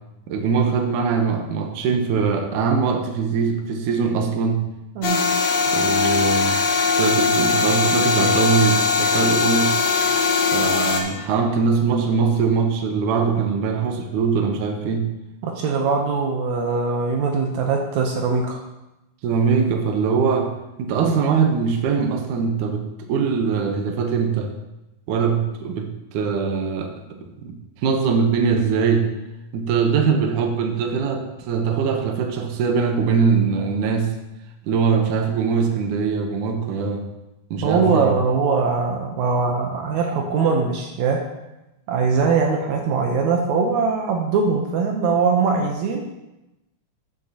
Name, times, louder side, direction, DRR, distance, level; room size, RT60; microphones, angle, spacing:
voice 1, 0.3-4.7 5.7-6.6 7.0-9.8 10.5-15.1 19.2-20.5 20.8-24.5 25.1-26.9 27.4-27.6 27.8-29.1 29.5-34.1 34.6-37.1 37.5-38.2, right 5 dB, 70° right, 5 dB, 2.1 m, -22 dB
sound 1, 5.0-11.0, left 4 dB, 70° left, 2.9 m, -20 dB
voice 2, 5.0-5.3 15.4-18.6 37.6-41.2 41.9-46.0, right 5 dB, 90° right, 1 dB, 1.6 m, -21 dB
12.0 x 8.6 x 2.9 m, 0.95 s
omnidirectional pair, 4.5 m